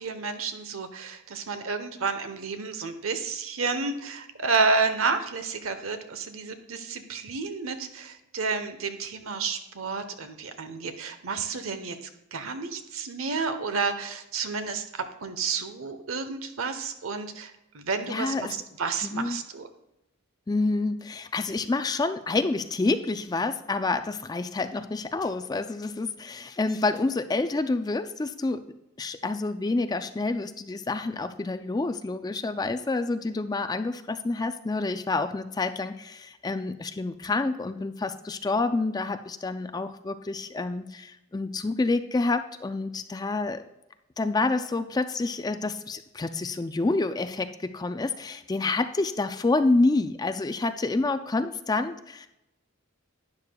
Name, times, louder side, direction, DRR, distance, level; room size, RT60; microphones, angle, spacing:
voice 1, 0.0-12.0 12.3-19.7, right 4 dB, 80° right, 9 dB, 0.9 m, -30 dB
voice 2, 18.1-18.5 19.0-19.4 20.5-28.6 29.0-43.6 44.2-52.3, left 3 dB, 20° left, 10 dB, 0.3 m, -28 dB
11.5 x 9.7 x 2.3 m, 0.90 s
head